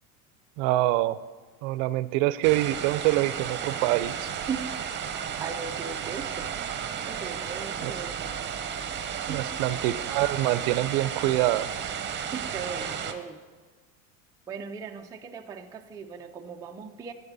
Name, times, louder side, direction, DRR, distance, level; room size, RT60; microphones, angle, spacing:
voice 1, 0.6-1.2 1.6-4.3 7.8-7.9 9.3-11.8, right 16 dB, 60° right, 16 dB, 0.5 m, -25 dB
sound 1, 2.4-13.1, right 8 dB, 25° right, 0.8 m, -33 dB
voice 2, 4.5-4.9 5.4-6.5 7.1-8.5 9.3-9.5 12.3-13.4 14.5-17.1, right 6 dB, 10° right, 3 dB, 0.3 m, -38 dB
12.5 x 8.1 x 4.0 m, 1.4 s
supercardioid pair, 115°, 42 cm